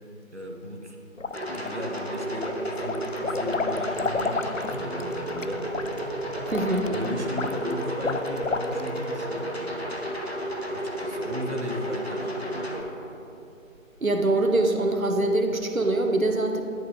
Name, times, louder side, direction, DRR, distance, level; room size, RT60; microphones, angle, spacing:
voice 1, 0.3-1.0 1.5-5.6 6.7-9.9 10.7-12.7, equal, 55° right, 2 dB, 1.2 m, -36 dB
sound 1, 1.2-2.0 2.4-9.1, left 4 dB, 65° left, 0.5 m, -31 dB
sound 2, 1.3-12.8, right 1 dB, 50° left, 1.1 m, -32 dB
Aircraft, 5.3-13.1, equal, 35° right, 2.2 m, -47 dB
voice 2, 6.5-6.8 14.0-16.6, right 2 dB, 80° right, 4 dB, 1.2 m, -23 dB
10.5 x 6.6 x 4.8 m, 2.7 s
figure-of-eight pair, 180°, 41 cm